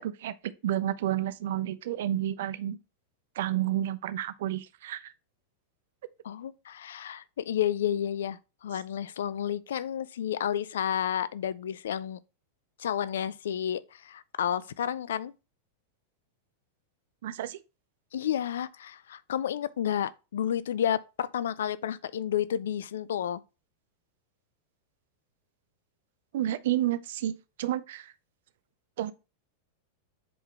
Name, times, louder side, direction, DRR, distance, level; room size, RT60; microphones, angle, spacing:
voice 1, 0.0-2.8 3.4-5.1 17.2-17.6 26.3-28.1 29.0-29.1, right 12 dB, 55° right, 0.5 m, -30 dB
voice 2, 6.2-12.2 12.8-15.3 18.1-23.4, left 10 dB, 60° left, 0.3 m, -31 dB
7.7 x 3.8 x 3.2 m
figure-of-eight pair, 90°, 0 cm